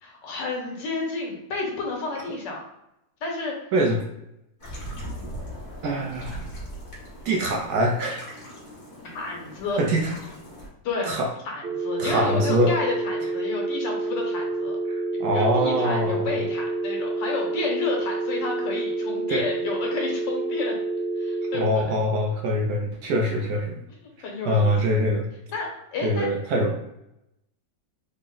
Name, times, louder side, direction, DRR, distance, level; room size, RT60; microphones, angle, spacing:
voice 1, 0.0-2.6 3.2-3.5 9.1-9.8 10.8-11.2 11.4-14.8 15.3-20.7 21.2-22.0 23.3-25.0 25.5-26.3, left 4 dB, 80° left, 0 dB, 1.6 m, -31 dB
sound 1, 4.6-10.7, equal, 35° left, 1.1 m, -39 dB
voice 2, 5.8-6.4 7.2-8.2 9.8-10.1 11.1-11.3 12.0-12.7 14.9-16.3 19.3-19.4 21.5-23.8 24.5-25.3 26.0-26.8, equal, 70° right, 1 dB, 1.0 m, -23 dB
sound 2, 11.6-21.6, right 2 dB, 90° right, 1.4 m, -28 dB
3.9 x 2.1 x 3.8 m, 0.85 s
omnidirectional pair, 1.9 m